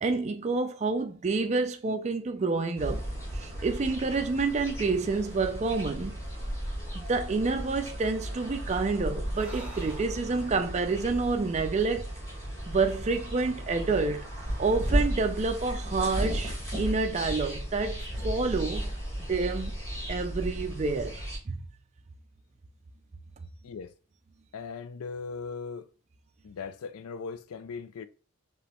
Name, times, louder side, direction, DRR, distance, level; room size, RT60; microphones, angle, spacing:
voice 1, 0.0-3.1 3.3-6.2 6.9-12.1 12.7-14.3 14.6-18.8 19.3-19.7 20.1-21.7, right 3 dB, 30° right, 0.4 m, -28 dB
sound 1, 2.8-21.4, equal, 15° left, 2.0 m, -35 dB
Breathing, 9.2-12.8, right 1 dB, 5° right, 0.9 m, -46 dB
voice 2, 24.5-25.9 26.4-28.1, left 5 dB, 80° left, 0.4 m, -39 dB
4.9 x 3.0 x 3.0 m
head